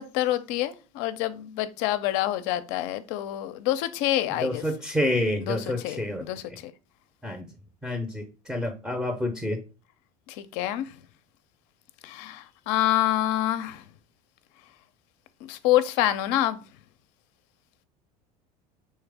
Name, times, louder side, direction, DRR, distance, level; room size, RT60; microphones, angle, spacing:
voice 1, 0.0-4.6 5.5-6.4 10.3-10.9 12.0-13.8 15.5-16.6, left 14 dB, 55° left, 0.5 m, -27 dB
voice 2, 4.4-6.2 7.2-7.5 7.8-9.6, left 1 dB, ahead, 0.6 m, -28 dB
3.2 x 3.1 x 3.4 m
hypercardioid pair, 75°, 21 cm